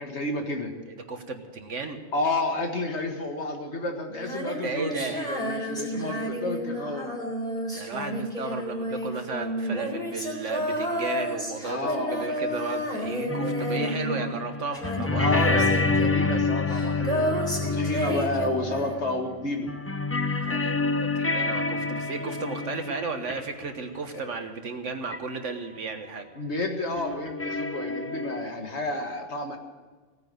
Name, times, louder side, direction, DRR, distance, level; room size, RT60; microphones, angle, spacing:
voice 1, 0.0-0.7 2.1-7.3 11.6-12.3 15.1-19.7 24.1-24.2 26.4-29.6, left 2 dB, 60° left, 3 dB, 2.1 m, -31 dB
voice 2, 0.9-2.0 4.6-5.3 7.6-15.8 18.0-18.2 20.4-26.3, right 4 dB, 70° right, 6 dB, 1.7 m, -34 dB
Female singing, 4.1-14.5 14.7-19.2, equal, 5° left, 3.5 m, -31 dB
sound 1, 13.3-19.4 19.7-23.7 25.1-25.2 25.4-25.5 27.0-28.5, left 3 dB, 20° left, 0.4 m, -28 dB
17.0 x 9.5 x 7.8 m, 1.4 s
omnidirectional pair, 1.3 m